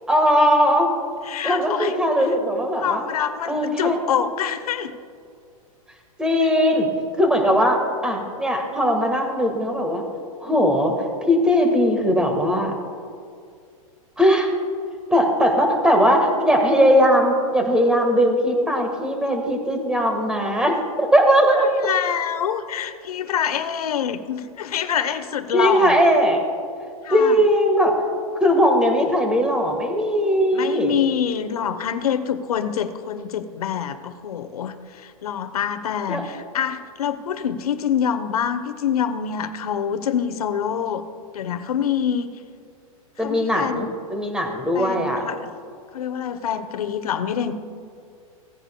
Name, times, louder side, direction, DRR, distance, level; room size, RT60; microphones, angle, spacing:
voice 1, 0.1-0.9 1.4-3.0 3.5-4.0 6.2-6.9 7.2-10.0 10.4-10.9 11.3-12.7 14.2-14.5 15.1-21.7 25.5-26.4 27.1-27.9 28.4-31.0 36.1-36.2 43.2-45.2, equal, 5° right, 3 dB, 1.5 m, -19 dB
voice 2, 1.2-2.0 2.8-4.9 21.5-26.0 27.0-27.4 30.5-41.0 41.3-42.3 43.2-43.9 44.7-45.5 45.9-47.5, left 8 dB, 85° left, 10 dB, 0.9 m, -26 dB
17.0 x 10.0 x 2.2 m, 2.3 s
hypercardioid pair, 135°, 19 cm